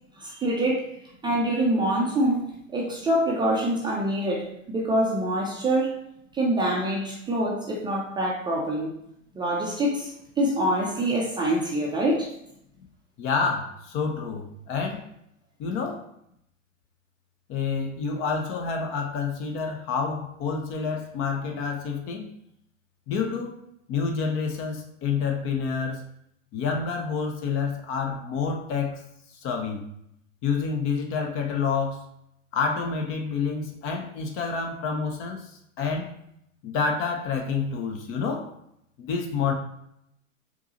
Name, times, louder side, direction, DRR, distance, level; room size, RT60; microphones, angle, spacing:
voice 1, 0.2-0.9 1.2-6.0 6.3-8.9 9.4-12.3, right 1 dB, 10° right, 0.5 m, -25 dB
voice 2, 13.2-15.1 15.6-16.1 17.5-22.3 23.1-23.5 23.9-26.0 26.5-29.0 29.4-29.9 30.4-32.1 32.5-36.1 36.6-38.5 39.0-39.5, left 5 dB, 30° left, 0.6 m, -28 dB
4.5 x 2.8 x 2.8 m
hypercardioid pair, 95°, 40 cm